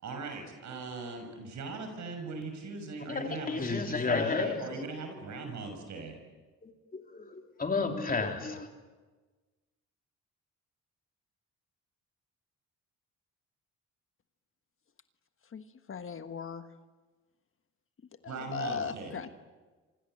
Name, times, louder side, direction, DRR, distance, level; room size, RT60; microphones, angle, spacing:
voice 1, 0.0-6.2 18.3-19.2, right 3 dB, 70° right, 5 dB, 6.4 m, -40 dB
voice 2, 3.0-4.8 6.6-8.7, left 4 dB, 30° left, 4 dB, 3.5 m, -32 dB
voice 3, 15.9-16.7 18.2-19.3, left 6 dB, 45° left, 9 dB, 1.5 m, -37 dB
28.5 x 26.0 x 7.9 m, 1.3 s
cardioid pair, 90°, 30 cm